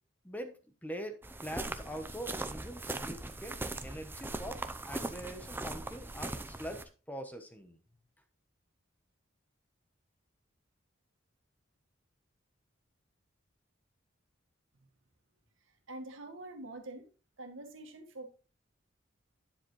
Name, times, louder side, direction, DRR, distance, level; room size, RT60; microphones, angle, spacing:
voice 1, 0.2-7.8, equal, 10° left, 6 dB, 1.0 m, -43 dB
sound 1, 1.2-6.8, right 2 dB, 10° right, 0.6 m, -40 dB
voice 2, 15.9-17.1 17.4-18.3, right 2 dB, 75° right, 4 dB, 2.0 m, -45 dB
10.0 x 7.1 x 3.1 m, 0.34 s
head